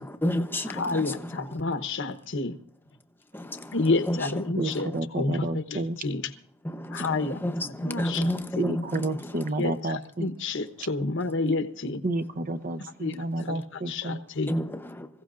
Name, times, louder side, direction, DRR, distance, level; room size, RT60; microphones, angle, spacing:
voice 1, 0.0-1.1 3.3-3.8 4.1-4.2 6.6-8.8 14.5-15.1, equal, 10° left, 0.9 m, -30 dB
voice 2, 0.7-2.6 3.7-4.9 5.2-6.2 6.9-8.6 9.6-12.0 13.0-13.1 13.4-13.5 13.9-14.5, left 3 dB, 60° left, 1.0 m, -29 dB
voice 3, 4.6-6.0 8.5-10.3 10.8-10.9 12.0-14.2, right 2 dB, 40° right, 0.7 m, -30 dB
26.5 x 16.0 x 2.5 m
head